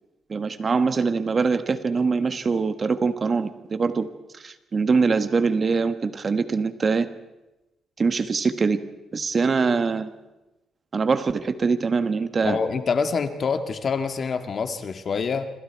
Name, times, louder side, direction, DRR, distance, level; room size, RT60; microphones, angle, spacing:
voice 1, 0.3-4.1 4.4-7.1 8.0-8.8 9.1-10.1 10.9-12.6, right 4 dB, 40° right, 10 dB, 1.4 m, -23 dB
voice 2, 12.4-15.4, left 5 dB, 50° left, 7 dB, 2.0 m, -26 dB
27.0 x 26.5 x 4.7 m, 1.0 s
cardioid pair, 90°, 0 cm